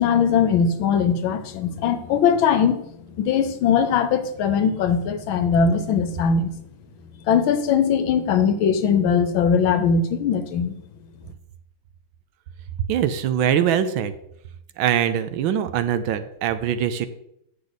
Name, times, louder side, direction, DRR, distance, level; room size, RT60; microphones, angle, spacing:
voice 1, 0.0-2.8 3.1-6.5 7.3-10.8, left 6 dB, 75° left, 10 dB, 1.5 m, -20 dB
voice 2, 12.8-14.1 14.8-17.1, right 9 dB, 75° right, 11 dB, 1.3 m, -22 dB
8.8 x 6.6 x 4.0 m, 0.76 s
omnidirectional pair, 2.3 m